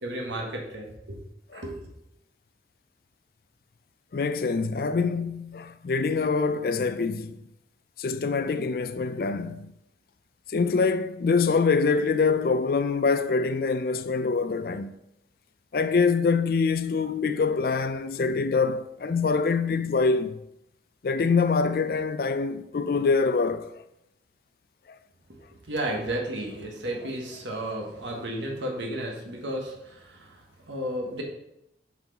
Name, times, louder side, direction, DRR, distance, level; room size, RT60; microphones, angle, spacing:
voice 1, 0.0-1.2 1.5-1.9 25.3-25.4 25.7-31.2, right 1 dB, 90° right, 1.5 m, -33 dB
voice 2, 4.1-7.4 8.0-9.7 10.5-14.9 15.7-20.4 21.0-23.7, left 4 dB, 55° left, 0.4 m, -25 dB
7.2 x 4.6 x 4.0 m
head